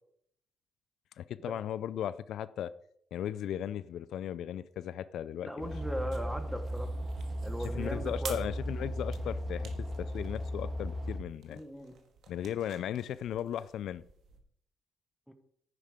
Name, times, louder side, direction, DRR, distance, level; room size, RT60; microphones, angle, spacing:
voice 1, 1.2-2.7 3.1-5.7 7.7-9.7 10.0-11.6 12.3-14.1, left 10 dB, 70° left, 16 dB, 0.4 m, -36 dB
voice 2, 5.4-6.9 7.4-8.4 11.5-12.0 15.3-15.4, equal, ahead, 8 dB, 1.4 m, -38 dB
sound 1, 5.6-11.2, equal, 25° right, 1.8 m, -36 dB
sound 2, 5.6-14.4, right 6 dB, 65° right, 2.1 m, -51 dB
11.0 x 9.5 x 5.1 m, 0.68 s
cardioid pair, 140°, 0 cm